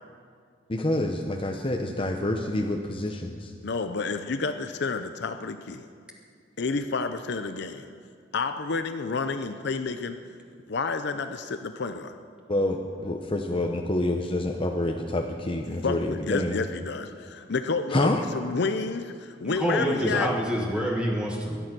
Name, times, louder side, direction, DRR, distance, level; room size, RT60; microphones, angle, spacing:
voice 1, 0.7-3.5 12.5-16.6 17.9-18.2, left 1 dB, 25° left, 2 dB, 0.8 m, -27 dB
voice 2, 3.6-5.8 6.6-7.9 8.3-10.2 10.7-12.1 15.8-20.3, left 4 dB, 60° left, 8 dB, 0.6 m, -30 dB
voice 3, 19.4-21.6, equal, 5° right, -2 dB, 1.4 m, -27 dB
23.0 x 9.3 x 6.1 m, 2.2 s
head